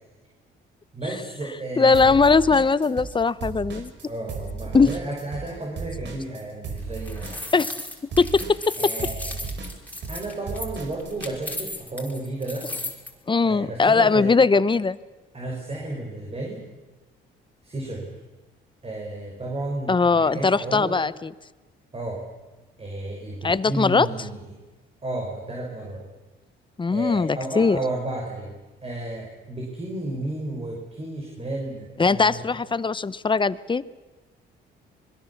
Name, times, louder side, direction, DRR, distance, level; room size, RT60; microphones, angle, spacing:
voice 1, 0.9-2.1 4.1-7.5 8.8-9.4 10.1-12.7 13.4-14.3 15.3-16.6 17.6-18.1 18.8-21.0 21.9-22.2 22.8-24.5 25.0-26.1 26.9-32.5, right 2 dB, 30° right, -1 dB, 5.8 m, -33 dB
voice 2, 1.8-3.9 4.7-4.9 7.5-7.7 8.2-8.7 13.3-15.0 19.9-21.3 23.4-24.1 26.8-27.8 32.0-33.8, left 4 dB, 25° left, 17 dB, 0.9 m, -20 dB
sound 1, 1.9-3.2 3.4-11.3, right 4 dB, 65° right, 5.0 m, -35 dB
sound 2, 6.8-13.1, left 2 dB, 10° left, 4.9 m, -35 dB
26.5 x 21.5 x 7.3 m, 1.2 s
cardioid pair, 90°, 20 cm